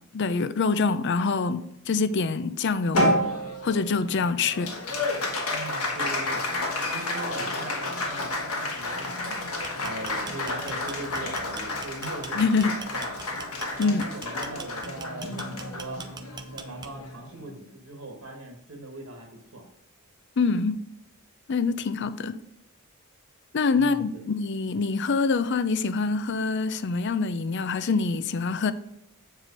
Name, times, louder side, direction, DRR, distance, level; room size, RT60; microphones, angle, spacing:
voice 1, 0.1-3.2 3.6-4.7 12.4-12.7 13.8-14.0 20.4-20.8 21.5-22.4 23.5-28.7, left 4 dB, 50° left, 0.5 m, -25 dB
Applause, 2.9-17.6, left 1 dB, 85° left, 1.4 m, -30 dB
voice 2, 5.5-6.5 6.9-9.4 9.8-13.2 13.8-16.0 16.5-19.7 23.7-24.3, right 2 dB, 75° right, 1.4 m, -40 dB
sound 1, 9.6-17.2, right 5 dB, 20° right, 0.5 m, -42 dB
7.5 x 4.8 x 5.2 m
head